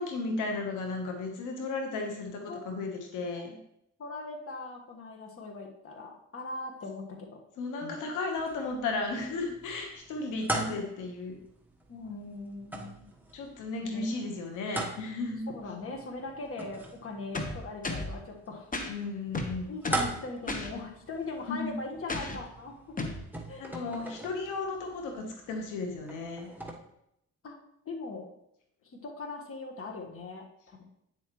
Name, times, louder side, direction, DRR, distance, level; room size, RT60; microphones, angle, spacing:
voice 1, 0.0-3.6 7.6-11.4 13.3-15.5 18.9-19.7 21.5-21.8 23.6-26.5, left 3 dB, 90° left, 3 dB, 1.2 m, -34 dB
voice 2, 4.0-7.4 7.8-8.0 11.9-13.1 13.8-14.1 15.5-18.7 19.7-23.2 23.5-23.7 24.1-24.2 27.4-27.5 27.8-28.3 28.9-30.8, left 3 dB, 45° left, 2 dB, 1.5 m, -40 dB
sound 1, 8.4-26.7, right 2 dB, 5° right, 1.2 m, -41 dB
sound 2, 17.3-18.2 18.7-18.9 19.3-20.1 20.5-20.7 22.1-22.4 23.0-23.2, left 2 dB, 25° left, 1.1 m, -34 dB
9.1 x 7.1 x 3.1 m, 0.77 s
cardioid pair, 90°, 30 cm